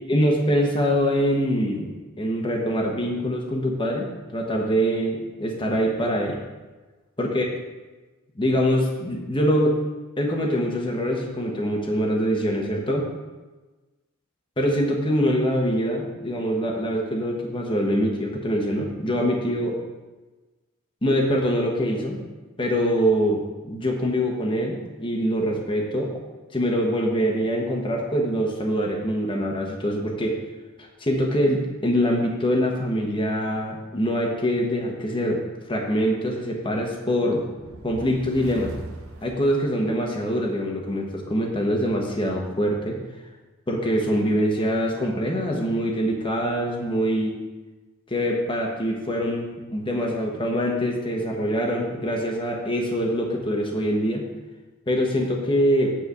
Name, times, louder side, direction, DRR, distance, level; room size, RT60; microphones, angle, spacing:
voice 1, 0.1-6.4 7.2-7.4 8.3-9.8 10.2-13.1 14.6-19.8 21.0-22.2 22.6-26.1 26.5-30.4 30.8-35.4 35.7-37.4 37.8-38.7 39.2-43.0 43.7-47.4 48.1-54.2 54.9-56.0, equal, 25° left, 0 dB, 1.2 m, -24 dB
sound 1, 37.5-40.2, right 1 dB, 80° right, 0.9 m, -39 dB
8.4 x 4.5 x 6.7 m, 1.2 s
head